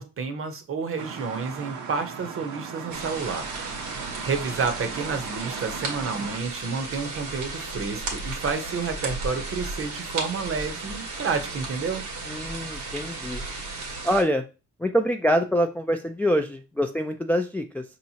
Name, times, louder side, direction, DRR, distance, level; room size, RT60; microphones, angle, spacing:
voice 1, 0.0-3.5 4.2-12.1, right 5 dB, 45° right, 8 dB, 0.8 m, -30 dB
sound 1, 1.0-6.4, right 6 dB, 70° right, 0.9 m, -38 dB
sound 2, 2.9-14.2, right 3 dB, 90° right, 1.3 m, -34 dB
voice 2, 12.3-13.4 14.0-14.4 14.8-17.8, equal, 5° left, 5 dB, 0.3 m, -25 dB
5.2 x 2.9 x 2.8 m, 0.31 s
cardioid pair, 90°, 30 cm